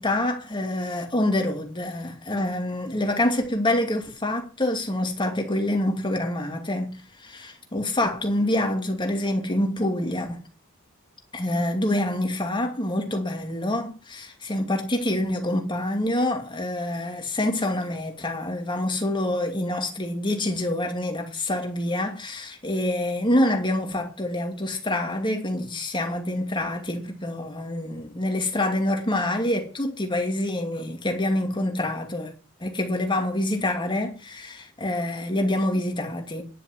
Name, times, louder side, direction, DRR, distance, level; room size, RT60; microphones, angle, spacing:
voice 1, 0.0-10.4 11.3-32.3 32.6-36.4, left 1 dB, 20° left, 2.5 m, -26 dB
11.0 x 7.0 x 7.8 m
head